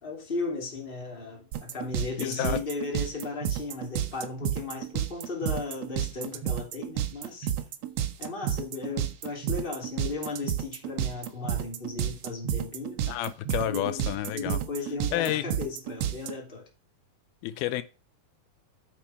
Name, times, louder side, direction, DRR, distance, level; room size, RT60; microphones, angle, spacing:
voice 1, 0.0-7.5 8.2-13.0 13.7-16.7, left 4 dB, 15° left, 2.6 m, -36 dB
sound 1, 1.5-16.3, right 10 dB, 80° right, 1.5 m, -30 dB
voice 2, 2.2-2.6 13.1-14.6 15.1-15.4 17.4-17.8, left 13 dB, 85° left, 2.6 m, -30 dB
8.6 x 6.5 x 5.7 m
omnidirectional pair, 4.3 m